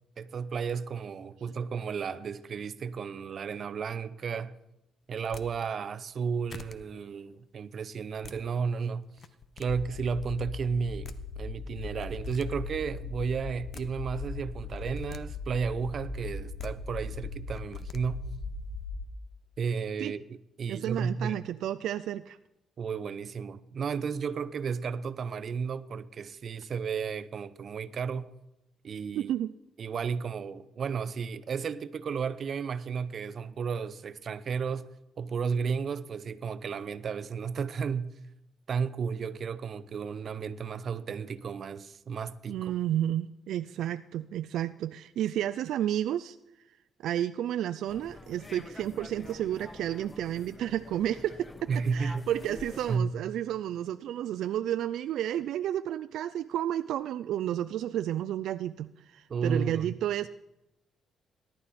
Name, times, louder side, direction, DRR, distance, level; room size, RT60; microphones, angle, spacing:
voice 1, 0.2-4.5 5.1-9.1 9.6-18.2 19.6-21.4 22.8-28.3 28.8-29.3 29.8-34.9 35.2-38.1 38.7-42.7 51.7-52.3 52.9-53.4 59.3-59.9, right 6 dB, 55° right, 0.7 m, -33 dB
sound 1, 5.2-5.5 6.1-6.2 6.5-6.8 8.0-8.4 9.1-9.7 10.7-10.8 11.0-11.2 12.0-12.5 13.5-13.9 14.7-15.2 16.3-16.7 17.5-18.0, left 6 dB, 45° left, 1.0 m, -46 dB
sound 2, 9.7-19.1, left 3 dB, 70° left, 1.2 m, -39 dB
voice 2, 20.7-22.4 29.2-29.5 42.5-46.4 47.0-60.3, right 11 dB, 80° right, 0.4 m, -31 dB
sound 3, 47.9-53.0, left 2 dB, 20° left, 0.7 m, -47 dB
18.0 x 11.5 x 4.2 m
cardioid pair, 90°, 0 cm